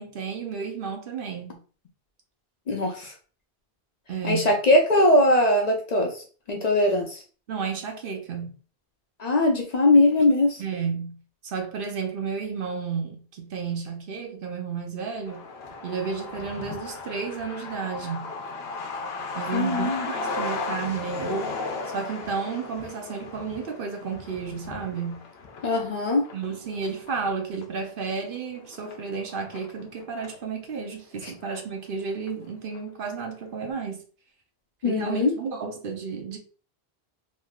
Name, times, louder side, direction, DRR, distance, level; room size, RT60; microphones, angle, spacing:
voice 1, 0.0-1.6 4.1-4.5 7.5-8.5 10.6-11.2 11.4-15.4 15.8-18.3 19.3-21.6 21.9-25.2 26.3-34.0 34.8-36.4, right 5 dB, 65° right, 0.8 m, -32 dB
voice 2, 2.7-3.1 4.2-7.2 9.2-10.6 19.5-20.1 25.6-26.3 31.2-31.3 34.8-35.3, left 1 dB, 50° left, 0.6 m, -21 dB
Truck, 15.3-30.4 30.8-30.9 31.1-32.0 32.3-32.4 32.7-33.1, left 3 dB, 80° left, 0.9 m, -36 dB
3.3 x 2.7 x 2.3 m
omnidirectional pair, 1.0 m